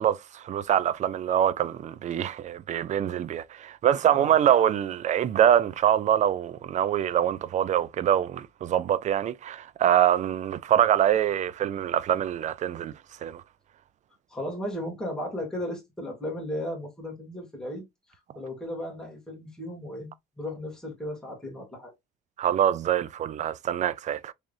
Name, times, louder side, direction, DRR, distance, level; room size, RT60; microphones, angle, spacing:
voice 1, 0.0-12.9 13.2-13.4 22.4-24.3, right 10 dB, 45° right, 0.4 m, -24 dB
voice 2, 14.3-17.8 18.4-20.1 20.4-21.9, left 1 dB, 5° left, 2.1 m, -35 dB
3.6 x 3.4 x 2.6 m
cardioid pair, 110°, 17 cm